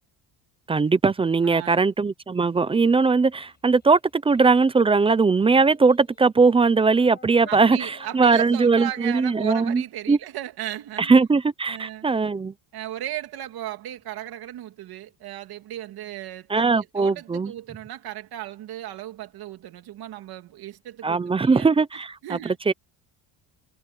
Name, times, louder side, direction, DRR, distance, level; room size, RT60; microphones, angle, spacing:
voice 1, 0.7-9.8 10.1-10.2 11.0-12.5 16.5-17.5 21.0-22.7, right 4 dB, 15° right, 0.4 m, -20 dB
voice 2, 1.4-1.8 7.5-11.2 11.7-12.1 12.7-21.7 21.9-22.6, right 13 dB, 60° right, 2.9 m, -36 dB
Child speech kid speaking, 3.0-4.7 5.4-6.3 6.8-9.9, left 5 dB, 25° left, 7.4 m, -51 dB
cardioid pair, 160°, 42 cm